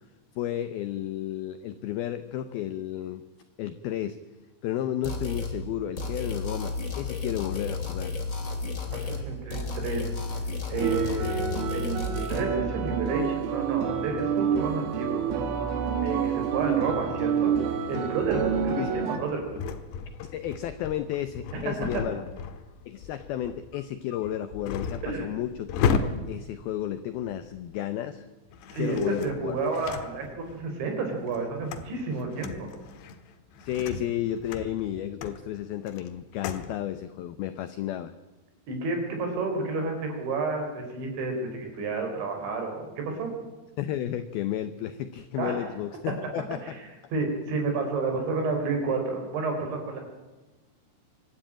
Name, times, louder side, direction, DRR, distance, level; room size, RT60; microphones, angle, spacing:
voice 1, 0.4-3.2 3.6-4.2 4.6-8.1 18.8-19.2 20.3-22.2 22.9-25.7 26.0-28.3 28.7-29.6 33.6-38.1 43.8-46.8, left 11 dB, 85° left, 11 dB, 2.1 m, -32 dB
sound 1, 5.0-5.6 6.0-9.3 9.5-12.4, left 3 dB, 20° left, 2.4 m, -32 dB
voice 2, 8.9-10.0 10.7-15.2 16.0-17.5 17.9-19.6 21.5-22.0 25.0-25.3 28.7-32.7 38.7-43.3 45.4-45.7 46.6-46.8 47.1-50.0, right 3 dB, 70° right, 3 dB, 6.7 m, -31 dB
sound 2, 10.8-19.2, right 7 dB, 85° right, 4.6 m, -28 dB
sound 3, 17.9-27.7 28.5-30.7 31.1-36.7, left 6 dB, 70° left, 3.3 m, -35 dB
25.0 x 13.0 x 8.9 m, 1.2 s
omnidirectional pair, 5.6 m